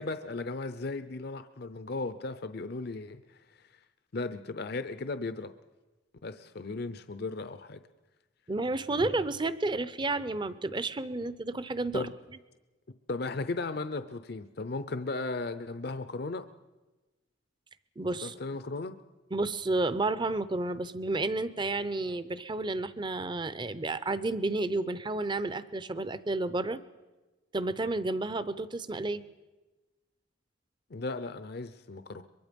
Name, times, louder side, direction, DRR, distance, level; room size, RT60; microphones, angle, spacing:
voice 1, 0.0-3.2 4.1-5.5 6.2-7.8 11.9-12.1 13.1-16.4 18.2-19.0 30.9-32.2, left 3 dB, 55° left, 11 dB, 0.7 m, -36 dB
voice 2, 8.5-12.1 18.0-18.4 19.3-26.8 27.5-29.2, right 2 dB, 25° right, 14 dB, 0.7 m, -31 dB
23.5 x 22.5 x 5.3 m, 1.2 s
head